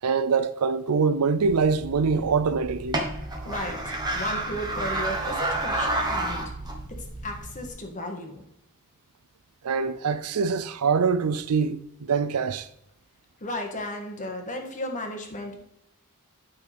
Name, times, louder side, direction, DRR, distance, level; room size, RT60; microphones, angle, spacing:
voice 1, 0.0-3.0 9.6-12.7, right 5 dB, 90° right, 0.5 m, -24 dB
sound 1, 1.4-7.7, right 2 dB, 20° right, 1.2 m, -30 dB
voice 2, 3.4-6.4 7.0-8.4 13.4-15.6, left 1 dB, 35° left, 1.5 m, -34 dB
10.0 x 5.7 x 3.4 m
head